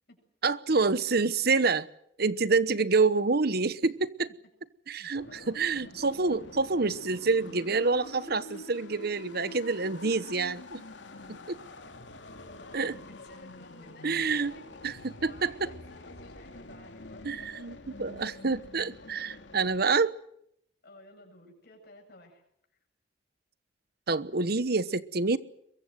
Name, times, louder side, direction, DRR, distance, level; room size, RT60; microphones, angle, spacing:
voice 1, 0.4-1.9 2.2-4.3 4.9-10.8 11.3-11.6 12.7-12.9 14.0-14.5 14.8-15.7 17.2-20.2 24.1-25.4, right 4 dB, 60° right, 15 dB, 1.1 m, -27 dB
voice 2, 5.0-5.6 11.4-17.3 20.8-22.4, left 1 dB, 60° left, 2 dB, 7.9 m, -54 dB
sound 1, 5.1-19.9, left 2 dB, 80° left, 2.8 m, -47 dB
23.0 x 23.0 x 8.0 m, 0.71 s
head